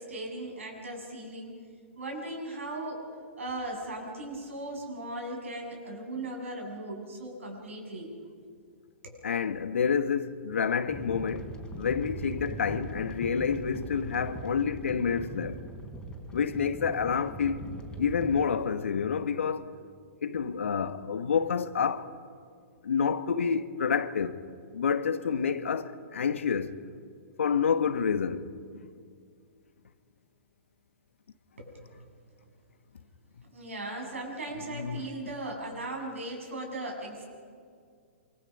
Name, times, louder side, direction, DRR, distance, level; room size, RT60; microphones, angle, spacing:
voice 1, 0.0-1.5 1.9-3.1 3.4-8.1 9.0-9.2 31.6-31.8 33.5-37.3, right 2 dB, 75° right, 7.9 m, -38 dB
voice 2, 9.2-15.6 16.3-17.6 18.0-19.7 20.2-22.1 22.8-24.4 24.7-26.7 27.4-28.5 28.7-28.9 34.7-35.1, left 6 dB, 70° left, 1.3 m, -28 dB
sound 1, 10.9-18.5, right 1 dB, 10° left, 4.1 m, -41 dB
28.0 x 25.5 x 5.5 m
figure-of-eight pair, 115°, 7 cm